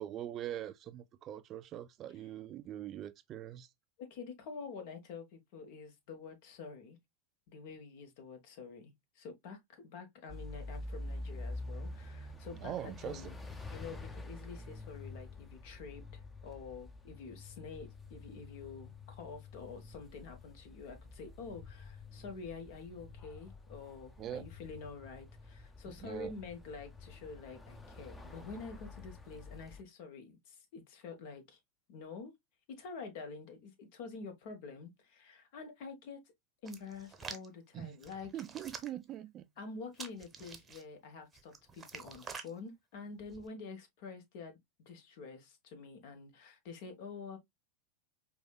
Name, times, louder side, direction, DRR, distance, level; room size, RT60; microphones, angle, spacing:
voice 1, 0.0-3.7 12.6-13.3 24.2-24.5 25.9-26.3 37.7-38.0 38.3-39.5, right 11 dB, 40° right, 0.4 m, -42 dB
voice 2, 4.0-7.0 7.5-13.4 13.7-31.6 31.9-32.3 32.7-36.2 36.6-38.3 39.6-44.6 44.8-47.4, left 4 dB, 60° left, 1.2 m, -47 dB
sound 1, 10.3-29.8, left 2 dB, 15° left, 0.6 m, -48 dB
Hands, 36.7-37.5 38.0-39.1 39.9-40.8 41.3-42.5 43.2-43.5, right 5 dB, 20° right, 0.8 m, -47 dB
4.9 x 2.3 x 2.2 m
hypercardioid pair, 100°, 0 cm